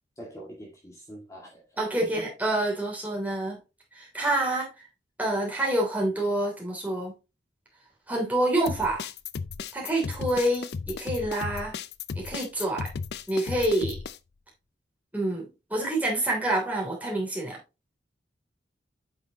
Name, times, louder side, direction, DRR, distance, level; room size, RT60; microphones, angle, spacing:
voice 1, 0.2-1.6 2.0-2.3, equal, 20° left, 2.2 m, -43 dB
voice 2, 1.8-3.6 3.9-4.7 5.2-7.1 8.1-9.1 9.7-11.7 12.1-12.9 13.3-14.0 15.1-17.6, right 1 dB, 10° right, 3.0 m, -27 dB
sound 1, 8.7-14.2, left 5 dB, 65° left, 0.5 m, -35 dB
8.7 x 5.8 x 2.9 m
head